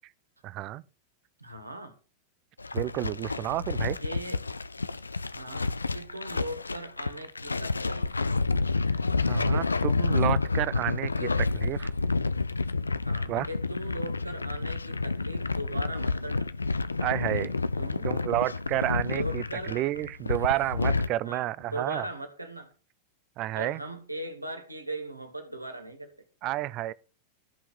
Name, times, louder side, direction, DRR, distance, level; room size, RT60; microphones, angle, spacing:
voice 1, 0.4-0.8 2.7-4.0 9.3-11.3 11.6-11.9 13.3-13.5 17.0-17.6 18.0-22.1 23.4-23.8 26.4-26.9, right 15 dB, 40° right, 0.6 m, -30 dB
voice 2, 1.4-2.0 4.0-4.4 5.3-8.1 9.4-9.7 11.2-11.3 13.0-16.5 17.8-18.1 19.0-19.8 21.2-22.7 23.5-26.3, right 1 dB, 85° right, 2.2 m, -39 dB
sound 1, 2.6-21.1, left 3 dB, 80° left, 0.5 m, -29 dB
13.5 x 5.8 x 6.3 m
figure-of-eight pair, 90°, 0 cm